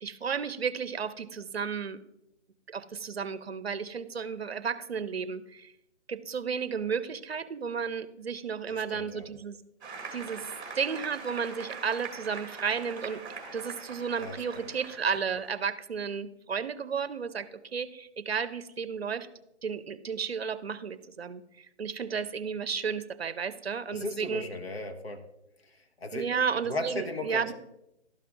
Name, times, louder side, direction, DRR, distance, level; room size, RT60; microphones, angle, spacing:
voice 1, 0.0-2.0 2.7-5.7 6.1-9.6 10.1-10.4 10.7-13.2 13.5-19.3 19.6-24.4 26.1-27.5, right 6 dB, 60° right, 14 dB, 0.6 m, -33 dB
voice 2, 8.7-9.3 14.2-14.7 23.9-25.2 25.6-26.3 26.6-27.5, left 2 dB, 60° left, 5 dB, 1.1 m, -37 dB
Applause, 9.8-15.5, right 4 dB, 15° right, 1.6 m, -43 dB
12.5 x 5.7 x 2.5 m, 0.85 s
figure-of-eight pair, 150°, 35 cm